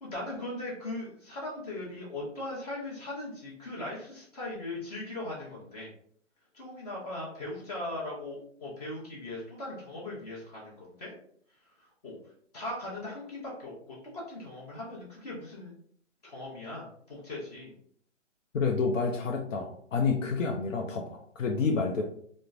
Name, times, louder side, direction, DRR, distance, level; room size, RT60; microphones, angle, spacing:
voice 1, 0.0-5.9 6.5-11.2 11.7-12.2 12.5-15.7 16.2-17.7, left 2 dB, 30° left, -5 dB, 0.8 m, -39 dB
voice 2, 18.5-22.0, left 4 dB, 85° left, 2 dB, 0.6 m, -29 dB
3.0 x 2.0 x 2.3 m, 0.62 s
hypercardioid pair, 145°, 37 cm